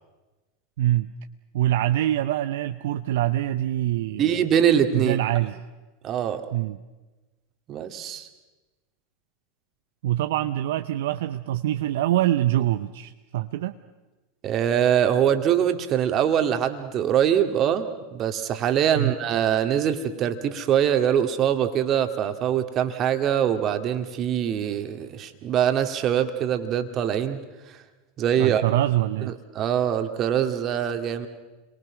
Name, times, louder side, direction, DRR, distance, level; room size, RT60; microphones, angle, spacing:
voice 1, 0.8-1.1 1.5-4.4 4.9-5.6 6.5-6.8 10.0-13.8 18.9-19.2 28.4-29.3, right 13 dB, 65° right, 9 dB, 0.7 m, -24 dB
voice 2, 4.2-5.2 6.0-6.5 7.7-8.3 14.4-27.4 28.2-28.6 29.3-31.3, right 9 dB, 40° right, 7 dB, 2.2 m, -23 dB
30.0 x 23.5 x 6.2 m, 1.2 s
hypercardioid pair, 85°, 0 cm